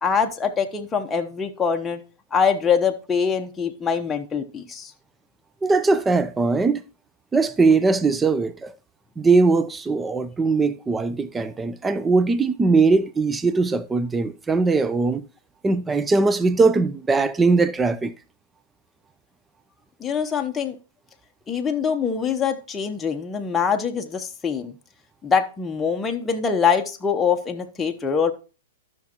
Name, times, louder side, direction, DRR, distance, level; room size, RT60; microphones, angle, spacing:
voice 1, 0.0-2.0 2.3-4.9 20.0-20.7 21.5-24.7 25.2-28.3, left 6 dB, 15° left, 0.9 m, -23 dB
voice 2, 5.6-6.8 7.3-8.7 9.2-15.2 15.6-18.1, right 3 dB, 10° right, 0.5 m, -20 dB
13.0 x 6.1 x 2.9 m
hypercardioid pair, 125°, 0 cm